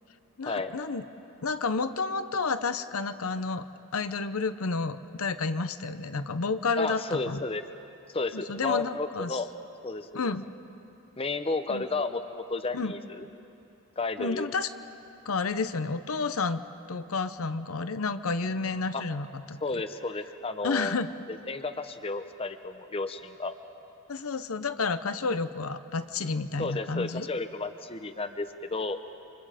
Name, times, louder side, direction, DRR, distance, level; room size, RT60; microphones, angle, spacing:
voice 1, 0.4-1.0 1.4-3.6 3.9-7.4 8.3-9.4 10.1-10.4 11.7-11.8 12.7-12.9 14.2-14.7 15.3-16.6 16.9-19.8 20.6-21.1 24.1-27.3, left 4 dB, 70° left, 11 dB, 0.8 m, -30 dB
voice 2, 6.8-7.6 8.1-9.5 9.8-10.3 11.2-13.2 14.0-14.5 18.9-19.0 19.6-21.0 21.3-23.5 26.6-29.0, left 3 dB, 25° left, 9 dB, 0.7 m, -32 dB
29.0 x 26.0 x 5.0 m, 2.8 s
head